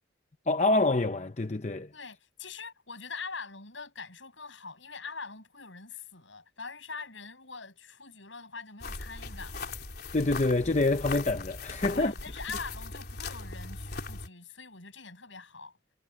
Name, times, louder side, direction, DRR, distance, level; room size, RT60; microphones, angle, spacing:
voice 1, 0.5-1.9 10.1-12.1, left 2 dB, 35° left, 0.7 m, -26 dB
voice 2, 1.9-9.8 11.8-15.8, left 4 dB, 70° left, 7.9 m, -43 dB
sound 1, 8.8-14.3, left 3 dB, 50° left, 4.1 m, -39 dB
head